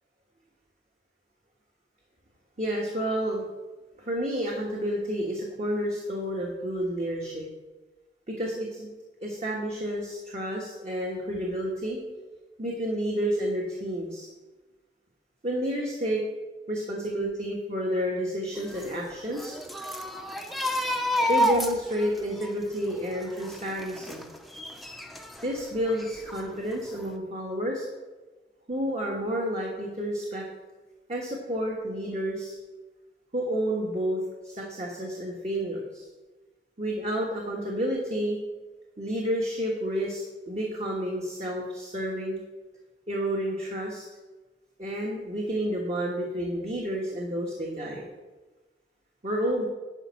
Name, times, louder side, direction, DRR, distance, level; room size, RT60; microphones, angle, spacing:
voice 1, 2.6-3.5 4.0-7.5 8.3-8.9 9.2-12.0 12.6-14.3 15.4-16.2 16.7-19.5 21.0-24.3 25.4-27.9 28.7-30.4 31.1-32.6 33.3-36.0 36.8-38.4 39.0-42.4 43.1-44.0 44.8-48.1 49.2-49.7, equal, 40° right, -2 dB, 1.3 m, -30 dB
sound 1, 18.6-25.5 25.9-26.8 27.0-27.2, equal, ahead, 0.6 m, -31 dB
10.5 x 5.2 x 5.9 m, 1.2 s
head